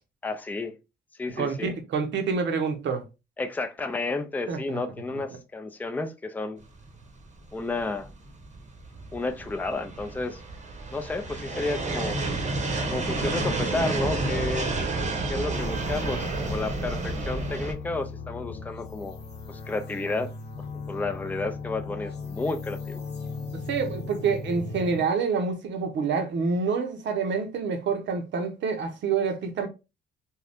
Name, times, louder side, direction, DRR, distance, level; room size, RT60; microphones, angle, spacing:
voice 1, 0.2-0.7 1.2-1.7 3.4-6.6 7.5-8.1 9.1-10.4 10.9-12.2 12.9-14.7 15.3-19.2 19.5-20.3 20.6-23.0, left 3 dB, 10° left, 0.4 m, -31 dB
voice 2, 1.4-3.0 4.5-4.8 23.7-29.7, right 5 dB, 65° right, 0.8 m, -27 dB
sound 1, 6.8-17.7, right 2 dB, 35° right, 0.8 m, -30 dB
sound 2, 15.2-25.0, left 4 dB, 60° left, 0.8 m, -38 dB
2.7 x 2.2 x 3.4 m
cardioid pair, 90°, 20 cm